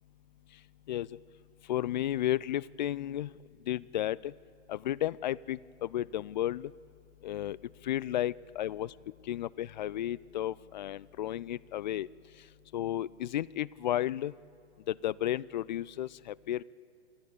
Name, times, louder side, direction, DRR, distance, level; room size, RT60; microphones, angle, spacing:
voice 1, 0.9-1.2 1.7-3.3 3.7-4.3 4.7-6.7 7.2-7.6 7.8-8.9 9.3-12.1 12.7-14.3 14.9-16.6, left 12 dB, 45° left, 23 dB, 0.4 m, -33 dB
27.5 x 11.5 x 8.3 m, 2.2 s
hypercardioid pair, 125°, 34 cm